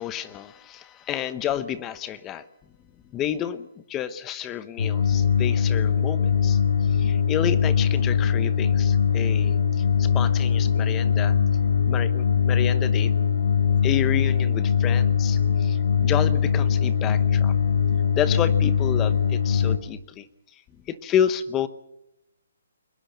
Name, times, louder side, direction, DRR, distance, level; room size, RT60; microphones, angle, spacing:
voice 1, 0.0-2.5 3.1-11.3 11.9-13.1 13.8-17.5 18.1-20.3 20.9-21.7, left 10 dB, 15° left, 14 dB, 0.9 m, -30 dB
sound 1, 4.8-19.8, left 7 dB, 65° left, 3.0 m, -21 dB
22.5 x 21.0 x 6.9 m, 0.83 s
hypercardioid pair, 165°, 0 cm